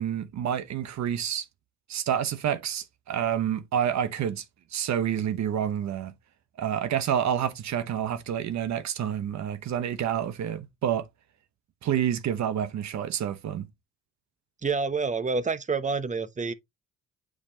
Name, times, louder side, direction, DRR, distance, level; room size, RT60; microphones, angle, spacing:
voice 1, 0.0-1.4 1.9-4.4 4.7-6.1 6.6-11.1 11.8-13.7, right 9 dB, 65° right, 0.9 m, -28 dB
voice 2, 14.6-16.5, right 4 dB, 25° right, 0.8 m, -28 dB
8.2 x 4.9 x 2.8 m
cardioid pair, 90°, 30 cm